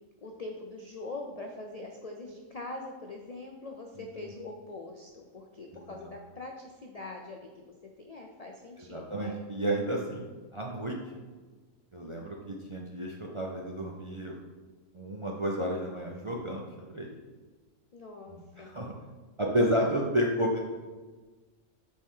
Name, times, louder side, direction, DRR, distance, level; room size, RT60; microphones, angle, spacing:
voice 1, 0.2-9.4 12.0-12.5 17.9-18.7, left 2 dB, 70° left, 2 dB, 0.3 m, -43 dB
voice 2, 8.8-10.3 10.5-11.0 11.9-14.4 14.9-17.1 18.3-18.9 19.4-20.6, equal, 40° right, -1 dB, 0.4 m, -31 dB
7.4 x 4.4 x 3.7 m, 1.3 s
omnidirectional pair, 1.4 m